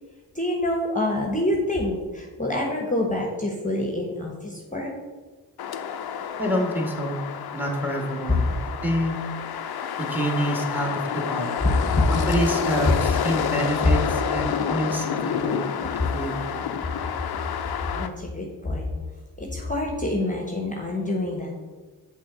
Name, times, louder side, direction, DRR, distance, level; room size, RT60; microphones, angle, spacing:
voice 1, 0.3-4.9 11.9-12.0 17.9-18.9 19.4-21.5, left 1 dB, 20° left, 0 dB, 1.2 m, -27 dB
sound 1, 5.6-18.1, left 8 dB, 65° left, 0.6 m, -29 dB
voice 2, 6.4-7.2 7.5-8.5 8.8-9.2 10.0-11.6 12.1-16.6, equal, 5° right, 2 dB, 1.7 m, -27 dB
6.3 x 3.6 x 5.9 m, 1.3 s
cardioid pair, 50°, 40 cm